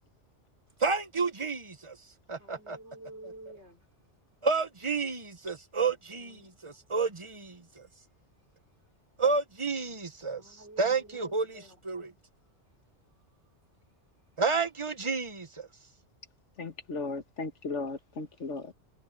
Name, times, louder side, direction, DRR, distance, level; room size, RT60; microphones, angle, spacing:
voice 1, 0.8-2.0 2.3-2.8 4.4-6.4 6.6-7.8 9.2-10.4 10.8-12.1 14.4-15.7, right 4 dB, 25° right, 1.1 m, -30 dB
voice 2, 2.4-3.9 6.2-6.8 7.7-7.9 10.4-11.8, right 1 dB, 70° right, 5.5 m, -50 dB
voice 3, 16.6-18.7, left 3 dB, 80° left, 1.9 m, -36 dB
omnidirectional pair, 1.2 m